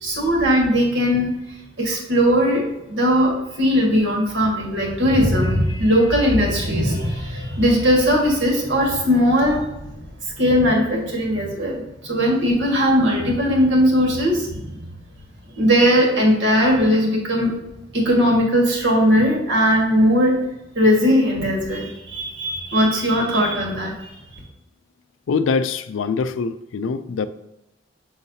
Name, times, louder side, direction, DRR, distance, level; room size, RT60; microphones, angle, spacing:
voice 1, 0.0-1.3 1.8-9.7 10.4-14.7 15.5-17.5 17.9-20.4 20.7-23.9, equal, 70° right, 1.6 m, -19 dB
voice 2, 25.3-27.3, left 5 dB, 90° left, 0.4 m, -23 dB
6.4 x 5.6 x 2.7 m
head